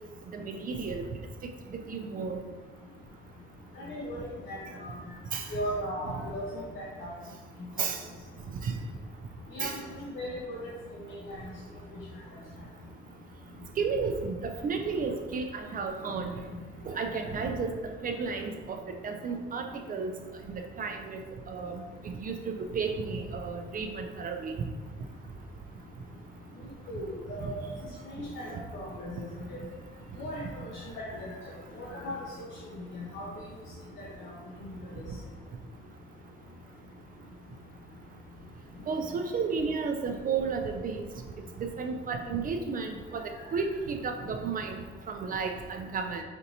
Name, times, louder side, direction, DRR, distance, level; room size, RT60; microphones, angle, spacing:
voice 1, 0.3-1.0 1.9-2.4 5.3-5.5 7.8-8.0 8.6-8.7 9.6-9.8 13.8-16.3 16.9-17.7 18.0-20.1 20.5-21.2 21.5-21.7 22.2-22.3 22.7-24.6 27.4-27.5 38.9-41.0 41.6-43.2 43.5-44.8 45.1-46.2, right 5 dB, 45° right, 4 dB, 0.4 m, -32 dB
voice 2, 3.8-4.2 4.5-4.9 5.5-7.1 9.5-9.8 10.1-10.6 11.1-11.4 16.1-16.2 26.9-27.0 27.3-27.6 28.3-29.1 29.5-29.6 30.2-30.7 31.1-31.3 31.7-32.5 32.9-33.3 34.0-34.1 34.9-35.0, equal, 70° left, -5 dB, 0.7 m, -37 dB
4.4 x 2.6 x 2.7 m, 1.3 s
cardioid pair, 90°, 20 cm